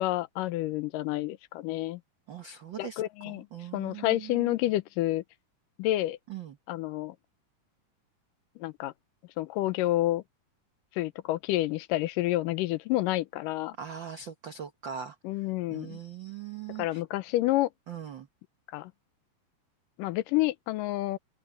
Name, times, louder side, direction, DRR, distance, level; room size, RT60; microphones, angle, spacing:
voice 1, 0.0-2.0 2.8-3.5 3.7-5.2 5.8-6.2 6.7-7.2 8.6-8.9 9.4-10.2 11.0-13.7 15.2-16.0 16.8-17.7 18.7-18.9 20.0-21.2, left 16 dB, 85° left, 2.3 m, -29 dB
voice 2, 2.3-4.6 6.3-6.6 13.7-17.0 17.9-18.3, right 8 dB, 90° right, 1.0 m, -41 dB
open air
omnidirectional pair, 3.9 m